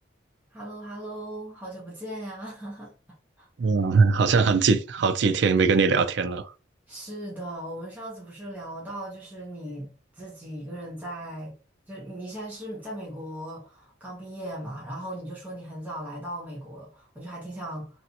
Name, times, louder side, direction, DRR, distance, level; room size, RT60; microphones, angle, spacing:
voice 1, 0.5-2.9 3.4-3.5 6.9-11.5 11.9-18.0, right 1 dB, 10° right, 0.9 m, -38 dB
voice 2, 3.6-6.5, right 4 dB, 65° right, 0.4 m, -21 dB
3.1 x 2.6 x 2.8 m
head